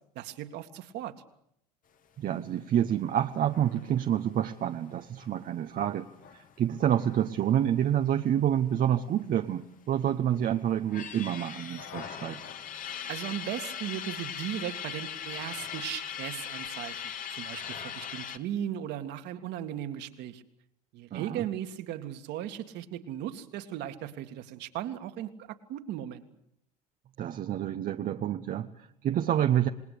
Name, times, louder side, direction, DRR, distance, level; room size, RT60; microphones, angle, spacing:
voice 1, 0.2-1.2 13.1-17.0 17.3-20.4 20.9-26.2, right 11 dB, 60° right, 7 dB, 2.2 m, -37 dB
voice 2, 2.2-12.4 21.1-21.5 27.2-29.7, right 10 dB, 45° right, 6 dB, 1.1 m, -28 dB
sound 1, 3.4-8.6 8.8-8.9 9.2-10.2 10.6-18.4, left 8 dB, 45° left, 1.8 m, -40 dB
27.5 x 19.5 x 8.5 m, 0.73 s
hypercardioid pair, 75°, 20 cm